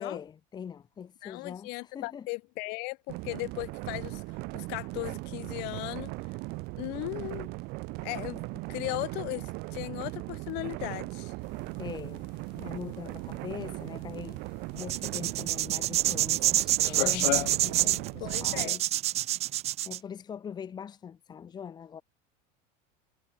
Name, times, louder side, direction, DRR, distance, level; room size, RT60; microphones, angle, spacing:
voice 1, 0.0-2.3 11.8-12.2 12.5-14.4 14.7-18.8 19.5-19.6 19.9-22.0, left 7 dB, 20° left, 3.0 m, -42 dB
voice 2, 1.2-6.1 6.8-7.5 8.0-11.3 18.2-18.8, left 29 dB, 50° left, 7.4 m, -37 dB
sound 1, 3.1-18.7, right 25 dB, 50° right, 2.7 m, -38 dB
sound 2, 11.4-17.8, left 19 dB, 90° left, 3.4 m, -37 dB
sound 3, 14.8-20.0, right 13 dB, 30° right, 1.1 m, -27 dB
cardioid pair, 170°, 21 cm